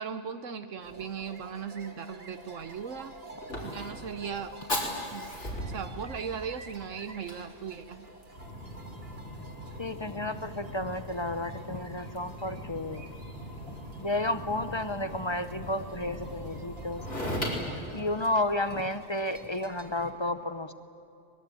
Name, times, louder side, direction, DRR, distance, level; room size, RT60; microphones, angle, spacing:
voice 1, 0.0-3.2 3.6-4.6 5.1-5.3 5.7-8.1, right 6 dB, 70° right, 9 dB, 1.2 m, -38 dB
sound 1, 0.8-20.1, right 3 dB, 50° right, 2.1 m, -51 dB
Fire, 2.6-18.8, left 1 dB, 60° left, 5.0 m, -39 dB
voice 2, 9.8-13.1 14.0-17.0 17.9-20.7, left 1 dB, 30° left, 10 dB, 0.6 m, -32 dB
24.0 x 20.5 x 8.9 m, 2.8 s
omnidirectional pair, 1.4 m